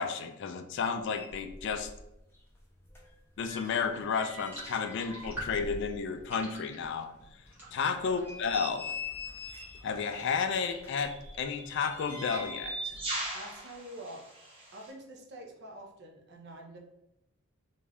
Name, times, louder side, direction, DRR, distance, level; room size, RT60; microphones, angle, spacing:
voice 1, 0.0-1.9 3.4-7.1 7.7-8.9 9.8-13.0, left 5 dB, 55° left, 7 dB, 0.3 m, -32 dB
sound 1, 0.8-0.9 1.1-2.1 2.3-6.3 6.7-6.8 7.3-7.4 8.0-9.9 10.8-12.8 13.0-13.2, left 3 dB, 10° left, 0.6 m, -44 dB
sound 2, 4.5-11.0 11.4-13.4, right 1 dB, 10° right, 1.2 m, -48 dB
sound 3, 9.5-9.7 10.7-14.9, right 2 dB, 25° right, 0.9 m, -40 dB
voice 2, 13.3-14.3 14.7-16.8, right 1 dB, 50° right, 1 dB, 0.6 m, -46 dB
3.4 x 2.6 x 3.3 m, 0.85 s
head